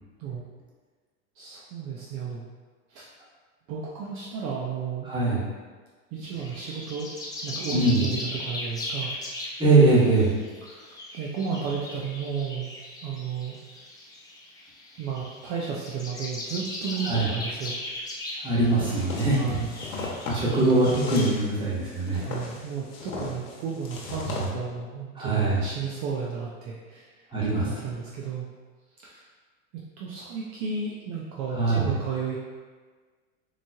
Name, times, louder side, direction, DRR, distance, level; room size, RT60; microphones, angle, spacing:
voice 1, 1.4-2.4 2.9-3.1 3.7-5.1 6.1-7.1 7.4-9.1 10.6-12.7 13.0-13.6 15.0-17.8 19.4-19.7 20.1-20.3 22.2-27.1 27.6-28.5 29.0-29.3 30.0-32.4, right 6 dB, 50° right, -4 dB, 0.6 m, -33 dB
voice 2, 5.1-5.4 7.7-8.0 9.6-10.3 17.1-17.3 18.4-19.6 20.2-22.2 24.4-24.5 25.2-25.6 27.3-27.7 31.6-31.9, right 2 dB, 10° right, -7 dB, 1.2 m, -22 dB
sound 1, 6.2-21.4, left 1 dB, 10° left, 0.5 m, -38 dB
sound 2, 18.8-24.5, left 3 dB, 85° left, 0.9 m, -37 dB
3.9 x 3.2 x 2.3 m, 1.4 s
hypercardioid pair, 105°, 41 cm